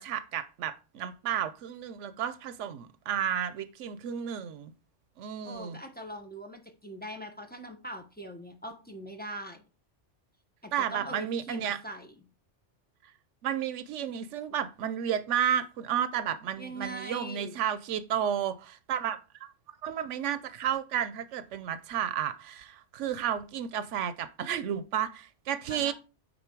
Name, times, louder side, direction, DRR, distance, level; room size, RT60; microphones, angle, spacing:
voice 1, 0.0-4.7 5.2-5.8 10.7-11.8 13.4-19.5 19.8-25.9, right 9 dB, 85° right, 0.9 m, -32 dB
voice 2, 5.4-9.6 10.6-12.1 16.6-17.5 25.7-25.9, right 1 dB, 10° left, 1.1 m, -41 dB
9.4 x 4.0 x 4.5 m
omnidirectional pair, 1.2 m